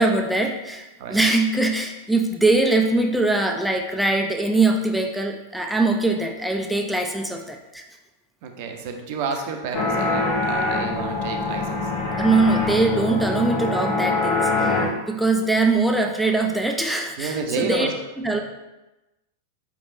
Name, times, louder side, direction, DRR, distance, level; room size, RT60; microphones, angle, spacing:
voice 1, 0.0-7.8 12.1-17.9 18.2-18.4, right 2 dB, ahead, 2 dB, 0.4 m, -22 dB
voice 2, 8.4-11.8 17.2-17.9, right 5 dB, 50° right, 4 dB, 0.6 m, -30 dB
sound 1, 9.7-14.9, left 3 dB, 35° left, 0.7 m, -24 dB
5.0 x 3.3 x 2.5 m, 1.0 s
figure-of-eight pair, 90°, 0 cm